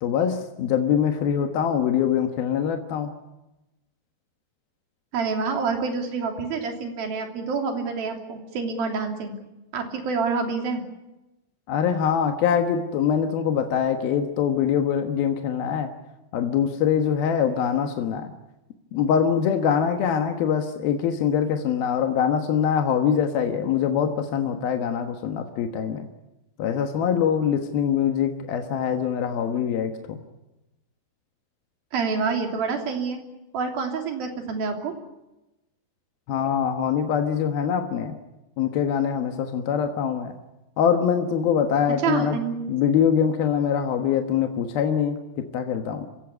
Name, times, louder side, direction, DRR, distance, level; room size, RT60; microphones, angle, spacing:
voice 1, 0.0-3.1 11.7-15.9 16.3-18.3 18.9-26.1 26.6-30.2 36.3-38.2 38.6-40.3 40.8-42.4 42.7-46.1, left 8 dB, 65° left, 5 dB, 2.9 m, -23 dB
voice 2, 5.1-9.3 9.7-10.8 31.9-33.2 33.5-35.0 42.0-42.7, right 5 dB, 60° right, 4 dB, 4.7 m, -27 dB
27.5 x 17.0 x 9.7 m, 0.98 s
omnidirectional pair, 5.0 m